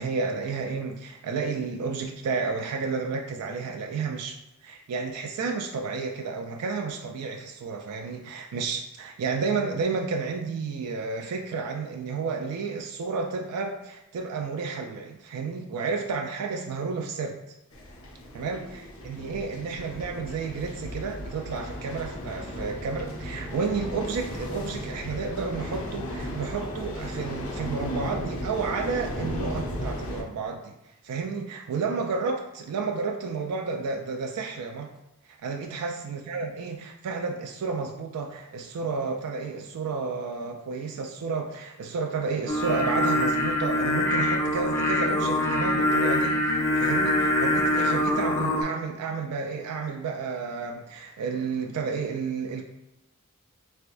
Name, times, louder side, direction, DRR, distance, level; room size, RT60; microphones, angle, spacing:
voice 1, 0.0-17.4 18.3-30.7 31.0-34.9 35.3-46.4 46.8-52.7, right 4 dB, 80° right, 3 dB, 0.3 m, -31 dB
sound 1, 17.7-30.2, equal, 65° left, 0.7 m, -35 dB
Singing, 42.5-48.6, left 1 dB, 15° left, 0.4 m, -24 dB
3.4 x 3.3 x 2.5 m, 0.93 s
head